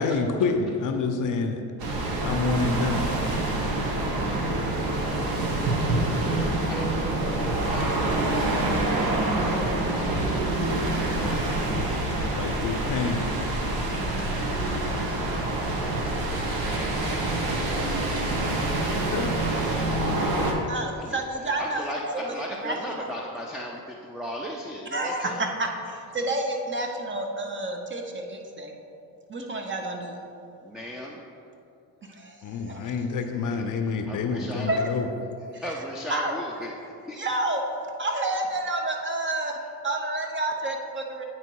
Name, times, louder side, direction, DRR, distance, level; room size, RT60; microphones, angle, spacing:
voice 1, 0.0-1.6 2.2-3.1 5.4-5.5 6.1-6.4 11.1-11.2 12.1-13.2 19.1-19.5 32.4-35.1, left 4 dB, 50° left, 5 dB, 0.6 m, -28 dB
sound 1, 1.8-20.5, right 2 dB, 60° right, 1.2 m, -26 dB
voice 2, 3.6-4.4 4.8-5.6 5.9-8.6 8.9-10.9 11.2-12.5 13.8-14.1 21.0-21.2 21.6-25.5 30.6-31.3 33.3-33.6 34.0-34.8 35.5-36.7 37.1-37.3, equal, ahead, -2 dB, 0.5 m, -39 dB
voice 3, 20.7-22.3 22.6-23.1 24.9-28.7 29.3-30.2 32.1-32.8 34.7-34.9 35.5-35.6 36.1-36.3 37.1-37.6 38.0-39.6 39.8-41.2, right 2 dB, 25° right, 3 dB, 0.8 m, -29 dB
8.8 x 3.0 x 4.6 m, 2.6 s
supercardioid pair, 85°, 42 cm